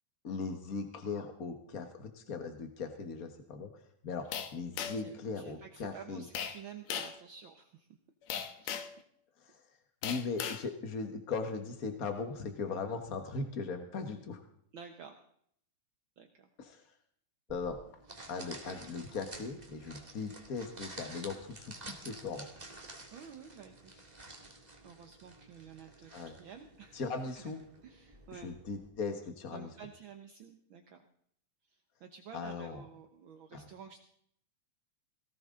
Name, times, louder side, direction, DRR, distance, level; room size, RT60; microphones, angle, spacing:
voice 1, 0.2-3.7 4.0-4.3 4.5-6.2 9.4-9.6 10.0-14.4 16.6-16.8 17.5-17.8 18.3-22.5 26.1-26.3 26.9-27.6 28.3-29.7 32.3-32.8 33.5-33.6, left 4 dB, 50° left, 6 dB, 1.0 m, -39 dB
sound 1, 4.3-5.1 6.3-6.6 6.9-7.2 8.3-9.0 10.0-10.6, left 8 dB, 70° left, 2.2 m, -37 dB
voice 2, 4.9-7.9 8.6-8.9 14.7-15.2 16.2-16.5 23.1-24.2 24.8-27.1 27.3-27.4 27.8-28.5 29.5-31.0 31.7-34.0, right 7 dB, 60° right, 5 dB, 1.3 m, -51 dB
sound 2, 17.5-28.9, right 2 dB, 15° right, 1.8 m, -51 dB
18.0 x 17.5 x 3.8 m, 0.66 s
omnidirectional pair, 3.5 m